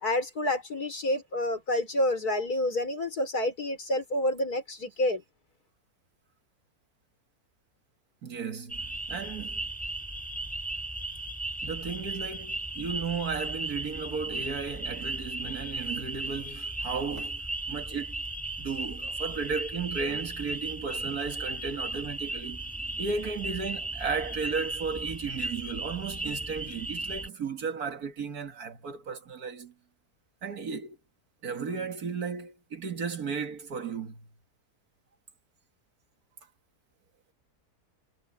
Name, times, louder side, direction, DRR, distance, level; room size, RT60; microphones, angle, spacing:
voice 1, 0.0-5.2, left 1 dB, 70° left, 4.5 m, -28 dB
voice 2, 8.2-9.6 11.6-18.2 18.6-22.6 23.0-29.7 30.4-31.0 31.4-34.3, right 5 dB, 65° right, 2.2 m, -34 dB
sound 1, 8.7-27.3, right 2 dB, 5° left, 3.5 m, -36 dB
omnidirectional pair, 1.7 m